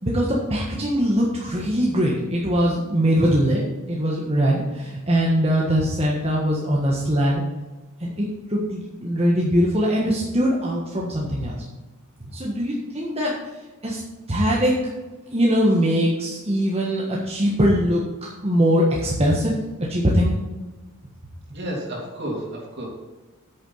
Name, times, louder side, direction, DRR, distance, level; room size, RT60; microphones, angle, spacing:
voice 1, 0.0-7.4 8.0-11.6 12.3-13.4 13.8-14.0 14.3-14.8 15.3-19.5 19.9-20.4, equal, 30° right, -4 dB, 1.5 m, -21 dB
voice 2, 21.5-22.9, right 1 dB, 55° right, -1 dB, 3.1 m, -31 dB
8.6 x 7.3 x 5.6 m, 1.2 s
head